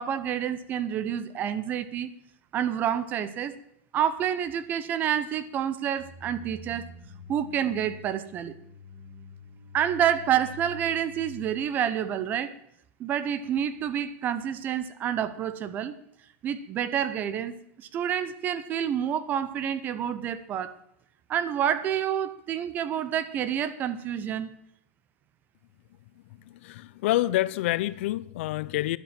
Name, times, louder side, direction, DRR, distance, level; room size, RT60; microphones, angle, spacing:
voice 1, 0.0-2.1 2.5-3.6 3.9-6.8 7.3-8.5 9.7-12.5 13.0-15.9 16.4-20.8 21.3-24.5, right 9 dB, 25° right, 0.7 m, -28 dB
sound 1, 6.0-11.7, left 4 dB, 60° right, 7.4 m, -46 dB
voice 2, 26.4-29.0, left 16 dB, 60° left, 0.5 m, -27 dB
11.5 x 10.5 x 7.5 m
supercardioid pair, 165°, 7 cm